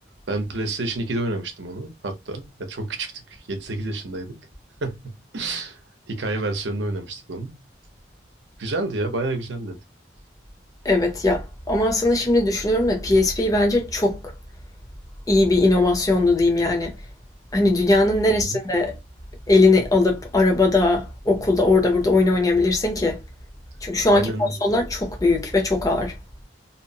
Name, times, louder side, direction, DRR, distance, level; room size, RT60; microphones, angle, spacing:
voice 1, 0.3-4.4 4.8-5.8 6.1-7.6 8.6-9.8 18.3-18.6 24.1-24.7, right 2 dB, 70° right, 0.7 m, -29 dB
voice 2, 10.8-14.3 15.3-17.0 17.5-18.9 19.5-23.2 23.8-26.1, left 2 dB, 20° left, 0.5 m, -19 dB
2.8 x 2.0 x 2.6 m
head